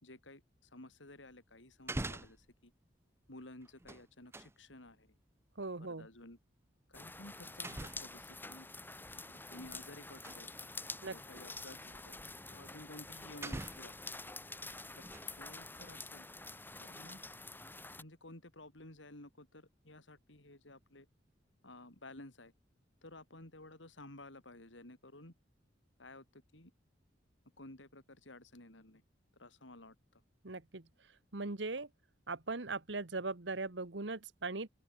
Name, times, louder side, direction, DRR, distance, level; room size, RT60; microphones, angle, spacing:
voice 1, 0.0-2.7 3.3-5.1 5.8-6.4 6.9-8.7 9.1-10.5 11.1-12.2 12.5-14.1 14.9-15.1 15.4-16.3 16.8-17.2 18.0-21.1 21.6-22.5 23.0-25.3 26.0-26.7 27.6-29.0 29.4-30.2, left 2 dB, 90° left, 4.6 m, -54 dB
sound 1, 1.2-1.3 1.7-2.5 3.6-4.5 6.2-6.3 7.6-8.2 9.3-9.9 10.2-10.4 11.3-11.4 12.8-12.9 13.4-14.0 14.8-15.4 15.8-15.9, right 2 dB, 15° right, 0.7 m, -44 dB
voice 2, 5.6-6.1 11.0-11.2 30.4-30.9 31.3-31.9 32.3-34.7, right 3 dB, 70° right, 1.5 m, -39 dB
sound 2, 6.9-18.0, left 2 dB, 10° left, 3.3 m, -48 dB
open air
head